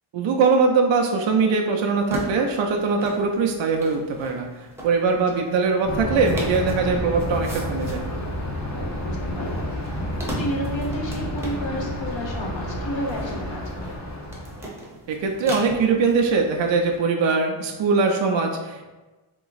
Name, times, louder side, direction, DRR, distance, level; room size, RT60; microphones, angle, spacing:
voice 1, 0.1-8.1 15.1-18.9, right 4 dB, 65° right, 2 dB, 0.5 m, -22 dB
sound 1, 2.0-17.0, right 1 dB, 5° right, 0.7 m, -40 dB
Thunder, 5.8-14.7, left 1 dB, 35° left, 0.7 m, -30 dB
voice 2, 9.0-9.6 10.4-14.0, equal, 65° left, -1 dB, 0.9 m, -31 dB
3.3 x 3.0 x 3.9 m, 1.2 s
wide cardioid pair, 155°, 50 cm